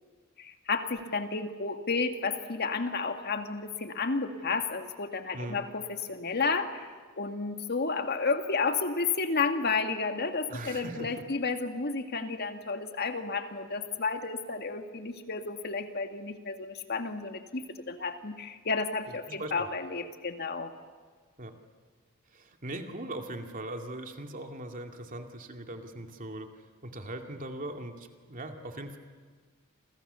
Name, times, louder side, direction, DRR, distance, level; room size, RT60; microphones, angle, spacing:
voice 1, 0.4-6.9 7.2-20.7, left 4 dB, 50° left, 6 dB, 1.9 m, -32 dB
voice 2, 10.5-11.1 19.1-19.7 21.4-21.5 22.3-26.5 26.8-29.0, right 1 dB, 40° right, 4 dB, 2.4 m, -40 dB
28.0 x 27.0 x 6.9 m, 1.5 s
head